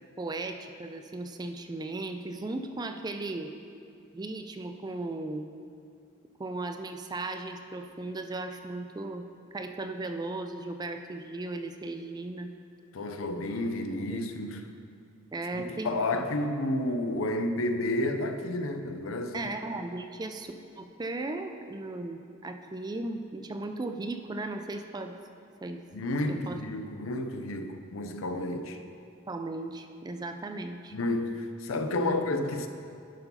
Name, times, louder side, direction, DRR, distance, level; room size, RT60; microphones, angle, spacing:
voice 1, 0.2-3.5 4.1-5.5 6.4-9.2 9.5-12.5 14.1-14.2 15.3-16.0 19.3-25.1 25.6-25.8 26.3-26.6 29.3-31.0 32.0-32.2, right 2 dB, 20° right, 6 dB, 0.4 m, -36 dB
voice 2, 12.9-14.7 15.5-19.5 25.9-28.8 30.9-32.7, left 1 dB, 80° left, 7 dB, 0.6 m, -31 dB
10.5 x 4.5 x 5.6 m, 2.4 s
head